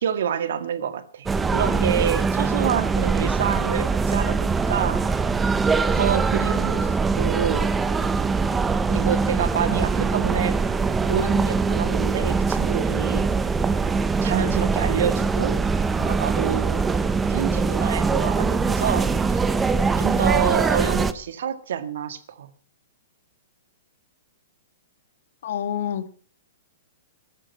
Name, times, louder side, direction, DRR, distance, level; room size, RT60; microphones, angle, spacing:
voice 1, 0.0-5.1 5.9-7.7 8.9-10.6 11.1-13.3 14.2-16.8 17.3-19.4 20.0-22.5, right 8 dB, 60° right, 12 dB, 1.8 m, -27 dB
sound 1, 1.3-21.1, right 4 dB, 5° right, 0.6 m, -22 dB
voice 2, 25.4-26.1, left 9 dB, 55° left, 12 dB, 1.6 m, -27 dB
14.0 x 11.5 x 7.3 m, 0.43 s
hypercardioid pair, 175°, 0 cm